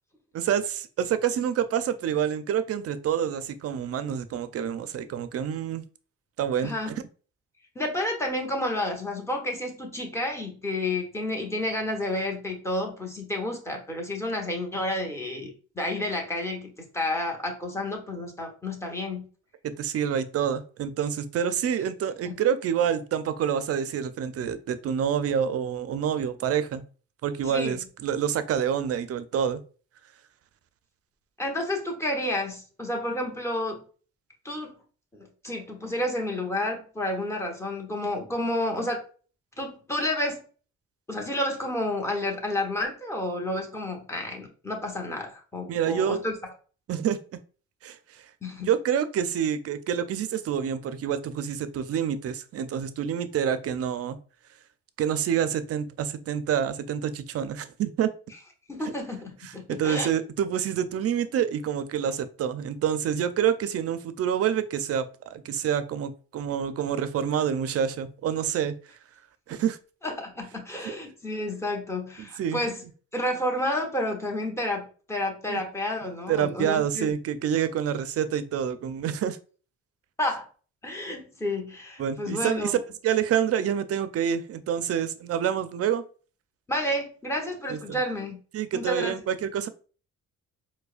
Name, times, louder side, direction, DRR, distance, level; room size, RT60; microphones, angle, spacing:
voice 1, 0.3-5.8 6.4-7.0 19.6-26.8 27.2-29.6 45.7-46.2 46.9-47.2 47.8-48.2 48.7-54.2 55.0-58.1 59.4-68.7 69.5-69.8 72.2-72.6 75.5-75.6 76.3-79.4 82.0-82.8 83.0-86.0 87.7-88.0 88.5-89.7, right 8 dB, 50° right, 12 dB, 0.4 m, -27 dB
voice 2, 7.7-19.3 22.3-22.4 27.4-27.8 31.4-33.8 34.4-34.7 35.1-39.0 39.6-40.4 41.1-46.4 48.4-48.7 58.7-60.1 70.0-72.8 73.1-77.1 80.2-80.5 80.8-82.8 86.7-88.4 88.7-89.2, left 1 dB, 10° left, 1 dB, 1.0 m, -30 dB
4.6 x 2.2 x 2.4 m, 0.39 s
cardioid pair, 90°, 30 cm